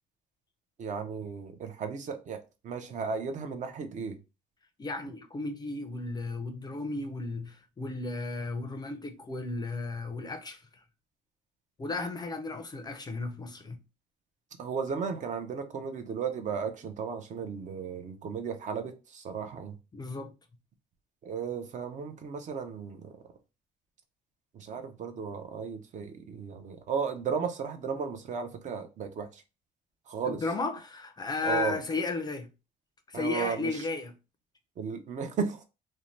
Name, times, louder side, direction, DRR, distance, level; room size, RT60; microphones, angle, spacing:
voice 1, 0.8-4.2 14.6-19.8 21.2-23.1 24.5-29.4 30.1-30.4 31.5-31.8 33.1-33.7 34.8-35.6, right 6 dB, 45° right, 0.5 m, -35 dB
voice 2, 4.8-10.7 11.8-13.8 19.9-20.3 30.2-32.5 33.1-34.1, left 3 dB, 25° left, 0.4 m, -34 dB
2.6 x 2.1 x 3.0 m
cardioid pair, 110°, 17 cm